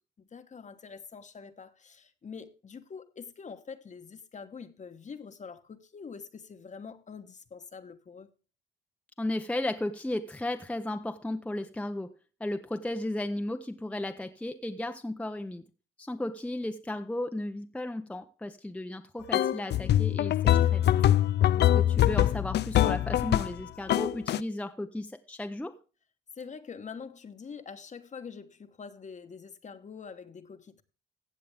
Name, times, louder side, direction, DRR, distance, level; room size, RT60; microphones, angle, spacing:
voice 1, 0.2-8.3 26.3-30.8, left 5 dB, 40° left, 1.2 m, -45 dB
voice 2, 9.2-12.1 12.4-15.6 16.0-20.9 21.6-25.7, left 1 dB, 5° left, 0.7 m, -35 dB
sound 1, 19.3-23.6 23.9-24.4, left 12 dB, 60° left, 0.4 m, -23 dB
15.5 x 7.5 x 3.4 m
cardioid pair, 90°, 20 cm